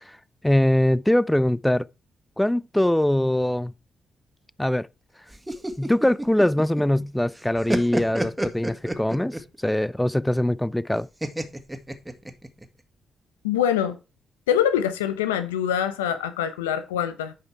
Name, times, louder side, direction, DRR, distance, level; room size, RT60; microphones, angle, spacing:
voice 1, 0.4-1.9 2.4-3.7 4.6-4.9 5.8-11.1, left 1 dB, 10° left, 0.5 m, -22 dB
sound 1, 5.3-7.0 7.3-9.6 11.2-12.7, right 1 dB, 10° right, 1.9 m, -29 dB
voice 2, 13.4-14.0 14.5-17.3, left 9 dB, 85° left, 0.7 m, -24 dB
11.0 x 5.6 x 4.6 m
hypercardioid pair, 40°, 0 cm